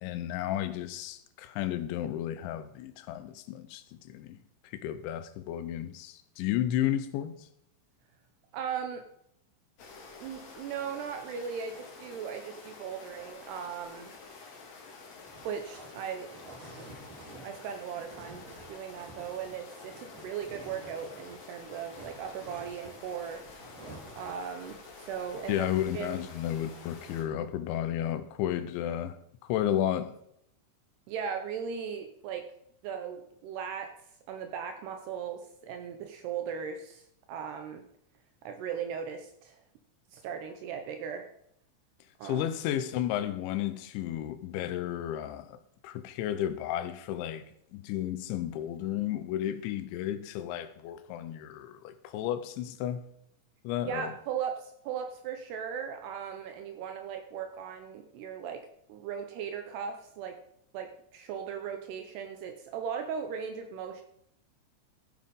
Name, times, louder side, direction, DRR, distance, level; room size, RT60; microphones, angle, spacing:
voice 1, 0.0-4.4 4.6-7.4 25.5-29.2 29.4-30.1 42.2-45.6 45.8-47.4 47.7-53.0 53.6-54.1, left 11 dB, 80° left, 3.0 m, -33 dB
voice 2, 8.5-9.0 10.2-14.1 15.4-16.3 16.6-16.8 17.4-23.4 24.2-25.7 25.9-26.2 31.1-32.5 32.8-33.9 34.3-37.0 37.3-37.8 38.4-39.6 40.1-41.3 42.2-42.5 53.9-60.4 60.7-64.0, right 7 dB, 75° right, 2.5 m, -38 dB
sound 1, 9.8-27.2, left 4 dB, 50° left, 2.2 m, -49 dB
sound 2, 15.1-21.4 21.7-24.4, right 2 dB, 55° right, 6.2 m, -51 dB
14.0 x 7.3 x 5.2 m
omnidirectional pair, 5.5 m